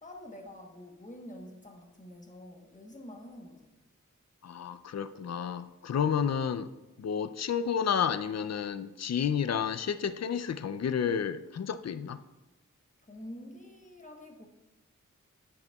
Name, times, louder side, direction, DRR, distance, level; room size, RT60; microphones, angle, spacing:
voice 1, 0.0-3.8 13.0-14.5, left 1 dB, 25° left, 1.1 m, -47 dB
voice 2, 4.4-6.7 7.0-12.2, left 7 dB, 55° left, 0.4 m, -31 dB
9.9 x 7.9 x 2.3 m
wide cardioid pair, 55°, 31 cm